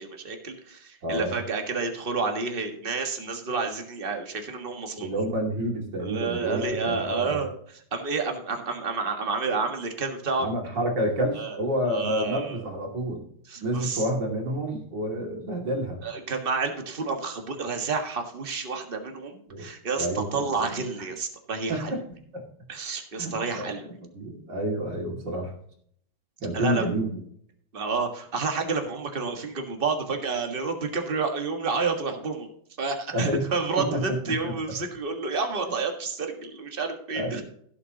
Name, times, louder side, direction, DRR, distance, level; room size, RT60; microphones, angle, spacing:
voice 1, 0.0-5.3 6.0-10.5 11.3-11.6 11.9-12.7 13.5-14.1 16.0-22.0 22.7-24.0 26.5-26.9 27.7-32.5 32.8-37.4, right 4 dB, 30° right, 4 dB, 1.7 m, -30 dB
voice 2, 1.0-1.4 5.0-7.4 10.4-13.2 13.6-16.0 19.5-19.7 20.0-20.7 21.7-22.0 22.3-22.4 23.2-25.5 26.4-27.2 33.1-33.5 33.8-34.5 37.1-37.4, right 1 dB, 65° right, 1 dB, 3.2 m, -29 dB
16.0 x 7.7 x 2.9 m, 0.65 s
omnidirectional pair, 2.1 m